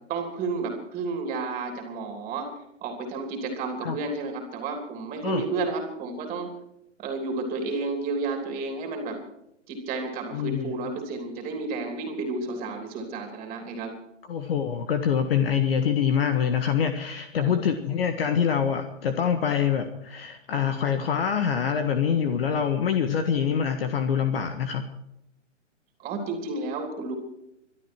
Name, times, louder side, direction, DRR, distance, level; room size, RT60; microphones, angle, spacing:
voice 1, 0.1-2.5 2.8-6.5 7.0-9.2 9.7-13.9 17.4-17.5 26.0-27.1, right 3 dB, 15° right, 4 dB, 3.3 m, -31 dB
voice 2, 10.3-10.7 14.3-24.8, left 7 dB, 50° left, 8 dB, 1.7 m, -25 dB
24.0 x 12.5 x 4.6 m, 0.81 s
hypercardioid pair, 140°, 38 cm